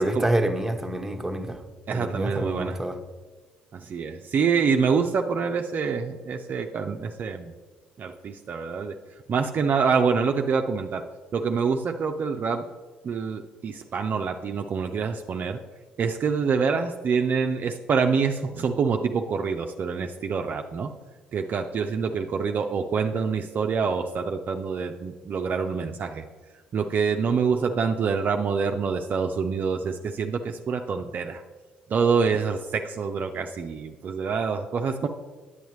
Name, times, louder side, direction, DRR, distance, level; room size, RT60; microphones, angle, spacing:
voice 1, 0.0-1.6 1.9-3.0, right 1 dB, 5° right, 0.9 m, -27 dB
voice 2, 1.9-2.8 3.7-7.5 8.0-9.0 9.3-11.0 11.3-12.7 13.0-15.6 16.0-20.9 21.3-26.3 26.7-31.4 31.9-35.1, right 5 dB, 45° right, 0.4 m, -26 dB
9.1 x 8.0 x 3.1 m
hypercardioid pair, 50°, 4 cm